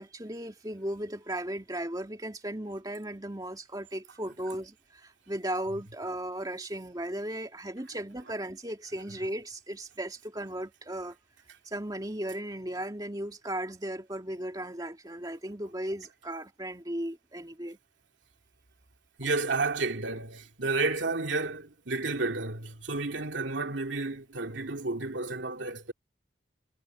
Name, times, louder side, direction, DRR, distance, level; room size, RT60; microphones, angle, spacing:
voice 1, 0.0-11.2 11.6-17.8, right 1 dB, 20° right, 2.6 m, -36 dB
voice 2, 19.2-25.9, right 3 dB, 85° right, 2.6 m, -31 dB
head